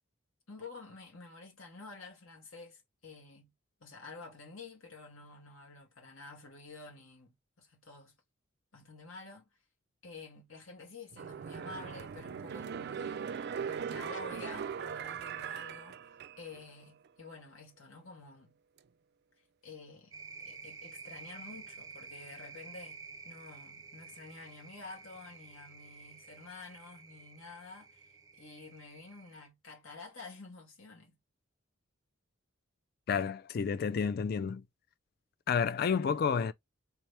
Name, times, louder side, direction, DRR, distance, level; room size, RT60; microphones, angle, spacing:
voice 1, 0.5-3.5 3.8-8.1 8.7-9.4 10.0-13.3 13.7-16.0 16.4-18.6 19.6-20.1 20.4-28.0 28.4-31.1, left 3 dB, 75° left, 1.8 m, -50 dB
sound 1, 11.1-16.7 17.1-17.2, right 7 dB, 50° right, 0.3 m, -40 dB
sound 2, 20.1-29.5, right 5 dB, 20° right, 0.7 m, -51 dB
voice 2, 33.1-34.6 35.5-36.5, left 6 dB, 45° left, 0.3 m, -30 dB
3.3 x 3.0 x 3.3 m
head